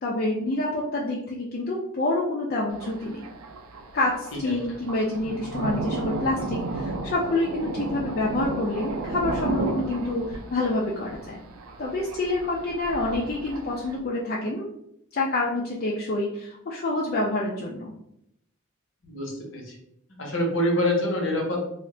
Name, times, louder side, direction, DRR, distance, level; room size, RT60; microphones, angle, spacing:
voice 1, 0.0-3.3 3.9-11.4 11.8-14.7 15.1-17.9, left 2 dB, 45° left, -3 dB, 0.4 m, -27 dB
Thunder, 2.7-14.0, right 2 dB, 85° right, 0.4 m, -33 dB
voice 2, 19.0-19.7 20.1-21.6, left 1 dB, 60° left, 0 dB, 0.8 m, -26 dB
2.4 x 2.1 x 3.7 m, 0.77 s
head